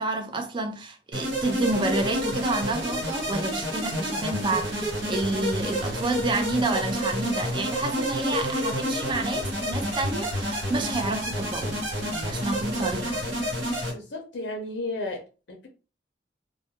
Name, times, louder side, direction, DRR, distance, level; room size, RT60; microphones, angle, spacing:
voice 1, 0.0-13.3, right 2 dB, 25° right, 0.4 m, -29 dB
sound 1, 1.1-13.9, equal, 90° right, 1.0 m, -29 dB
voice 2, 13.9-15.7, left 2 dB, 70° left, 0.5 m, -34 dB
2.3 x 2.1 x 2.8 m
head